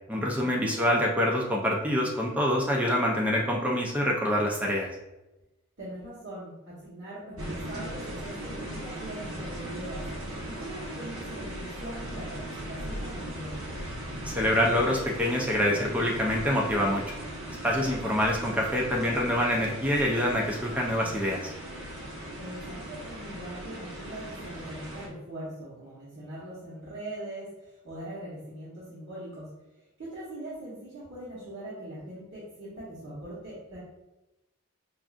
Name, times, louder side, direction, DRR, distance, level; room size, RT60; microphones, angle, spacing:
voice 1, 0.1-4.9 14.2-17.0 17.5-21.5, equal, 5° right, -2 dB, 0.4 m, -26 dB
voice 2, 5.8-10.1 10.5-13.8 22.4-29.5 30.0-33.8, right 1 dB, 60° right, -11 dB, 1.1 m, -41 dB
sound 1, 7.4-25.1, right 1 dB, 85° right, 0.9 m, -38 dB
4.6 x 2.5 x 2.4 m, 0.99 s
head